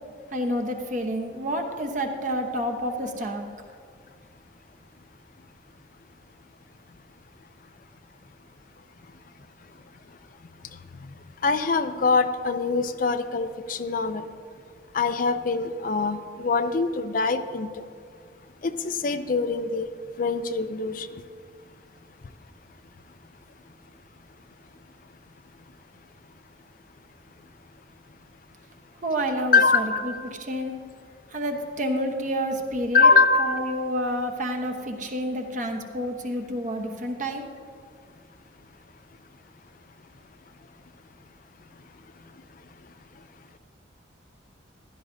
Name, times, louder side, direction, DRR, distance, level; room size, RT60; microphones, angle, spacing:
voice 1, 0.3-3.4 29.0-30.1 30.4-30.7 31.3-33.1 33.4-37.5, equal, 40° right, 3 dB, 1.0 m, -29 dB
voice 2, 11.4-14.2 14.9-17.8 18.6-19.9 20.2-21.1 29.5-30.3 32.9-33.6, left 4 dB, 45° left, 9 dB, 0.4 m, -23 dB
15.0 x 12.5 x 2.7 m, 2.1 s
head